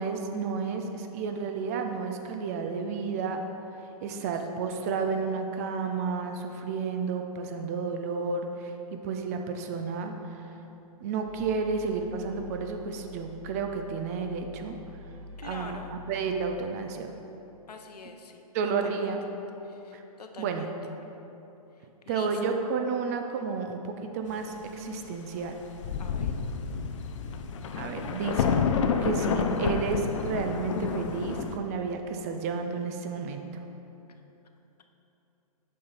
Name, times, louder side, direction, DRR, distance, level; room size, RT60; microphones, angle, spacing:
voice 1, 0.0-3.4 4.0-10.5 11.0-14.8 15.4-17.2 18.5-19.2 19.9-20.0 20.4-20.7 22.1-25.5 27.8-28.6 29.0-33.6, right 5 dB, 25° right, 5 dB, 0.4 m, -31 dB
voice 2, 4.0-4.3 4.6-4.7 15.4-15.9 17.7-18.4 18.8-19.1 19.6-20.7 22.1-22.3 26.0-26.3, left 5 dB, 90° left, 5 dB, 0.7 m, -46 dB
sound 1, 11.2-16.6, left 2 dB, 50° right, 1.6 m, -46 dB
Thunder, 25.4-25.5 25.8-31.6, left 6 dB, 50° left, 0.5 m, -29 dB
6.6 x 5.6 x 4.1 m, 2.9 s
hypercardioid pair, 145°, 20 cm